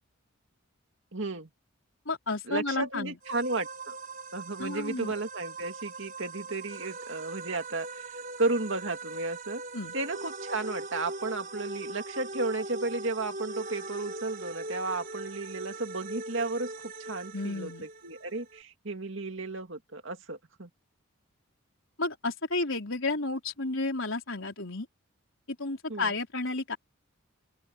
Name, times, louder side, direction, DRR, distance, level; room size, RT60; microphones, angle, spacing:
voice 1, 1.1-1.5 2.5-3.9 4.3-8.0 8.4-9.6 9.9-16.7 17.0-17.7 18.0-20.7 25.9-26.1, right 3 dB, 55° right, 2.4 m, -33 dB
voice 2, 2.1-3.2 4.6-5.1 9.7-9.9 17.3-17.9 22.0-24.9 25.6-26.8, left 3 dB, 60° left, 4.6 m, -32 dB
sound 1, 3.2-18.6, right 2 dB, 40° right, 5.1 m, -41 dB
open air
head